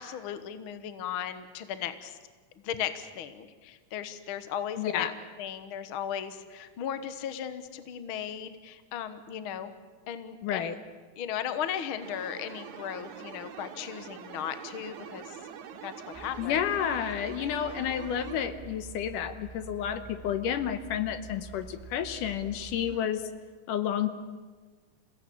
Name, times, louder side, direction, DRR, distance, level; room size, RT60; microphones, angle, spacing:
voice 1, 0.0-2.2 2.6-5.1 5.4-9.7 10.1-10.7 11.2-15.4 15.8-16.7 22.9-23.1, left 9 dB, 55° left, 11 dB, 1.5 m, -36 dB
voice 2, 4.8-5.1 10.4-10.7 16.4-23.2 23.7-24.1, left 9 dB, 75° left, 10 dB, 2.6 m, -30 dB
sound 1, 12.0-18.5, right 8 dB, 70° right, 2.6 m, -45 dB
sound 2, 16.1-23.0, right 6 dB, 10° right, 2.9 m, -47 dB
28.0 x 17.0 x 8.5 m, 1.4 s
omnidirectional pair, 3.8 m